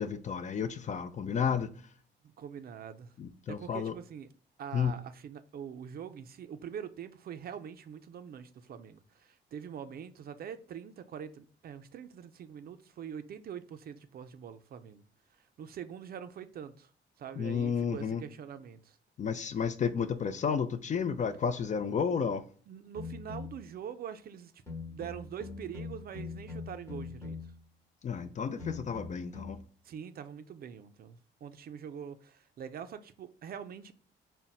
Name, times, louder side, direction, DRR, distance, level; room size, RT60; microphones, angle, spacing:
voice 1, 0.0-1.7 3.2-3.9 4.7-4.9 17.4-18.2 19.2-22.4 28.0-29.6, left 6 dB, 40° left, 0.4 m, -32 dB
voice 2, 2.2-3.1 3.5-4.3 4.6-15.0 15.3-16.9 17.2-19.0 22.7-27.5 29.8-33.9, right 8 dB, 50° right, 0.4 m, -44 dB
sound 1, 22.9-23.7 24.7-27.7 28.6-29.7, left 4 dB, 15° left, 1.0 m, -43 dB
3.9 x 2.1 x 2.3 m
cardioid pair, 90°, 20 cm